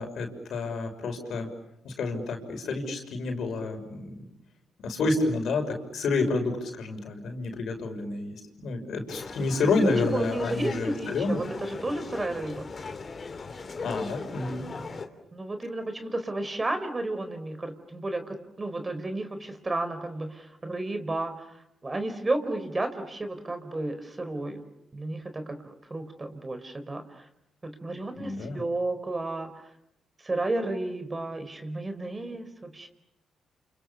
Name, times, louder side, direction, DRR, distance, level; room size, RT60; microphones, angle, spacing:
voice 1, 0.0-1.5 1.8-4.2 4.8-11.4 13.8-14.6 28.1-28.6, left 3 dB, 70° left, 4 dB, 6.1 m, -29 dB
sound 1, 9.1-15.1, left 4 dB, 45° left, 3.3 m, -39 dB
voice 2, 9.6-11.3 11.6-12.7 14.7-15.0 15.3-21.3 21.8-24.6 24.9-27.0 27.6-29.5 30.2-32.9, right 2 dB, 30° right, 9 dB, 4.6 m, -32 dB
29.0 x 28.0 x 7.2 m, 0.84 s
supercardioid pair, 55°, 0 cm